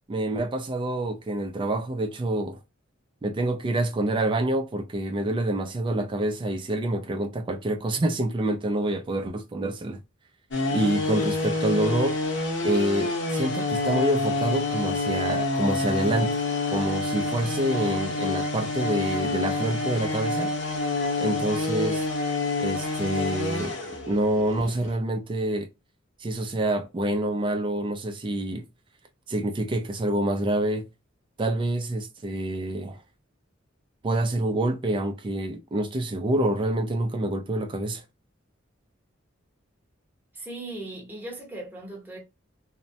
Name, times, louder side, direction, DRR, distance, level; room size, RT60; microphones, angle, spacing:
voice 1, 0.1-2.6 3.2-10.0 10.7-12.2 12.6-16.4 16.7-20.5 21.2-22.0 22.6-23.8 24.1-25.7 26.2-28.6 29.3-30.9 31.4-33.0 34.0-38.0, right 1 dB, 25° right, 0.3 m, -27 dB
sound 1, 10.5-24.9, left 3 dB, 65° left, 0.8 m, -28 dB
voice 2, 40.3-42.2, right 2 dB, 10° right, 0.8 m, -38 dB
3.1 x 2.1 x 2.6 m
head